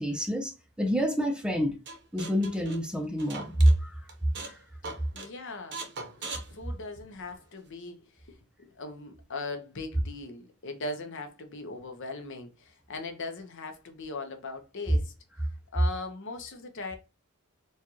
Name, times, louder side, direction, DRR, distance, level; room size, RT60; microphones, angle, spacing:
voice 1, 0.0-1.8 2.1-4.0 4.4-4.6, equal, 5° right, 0.5 m, -27 dB
sound 1, 1.9-3.8 4.1-4.6 4.8-5.3 5.7-7.3, right 3 dB, 55° right, 0.9 m, -40 dB
voice 2, 5.1-5.9 6.2-15.1 15.7-17.0, left 3 dB, 60° left, 0.8 m, -39 dB
4.4 x 2.4 x 2.8 m
head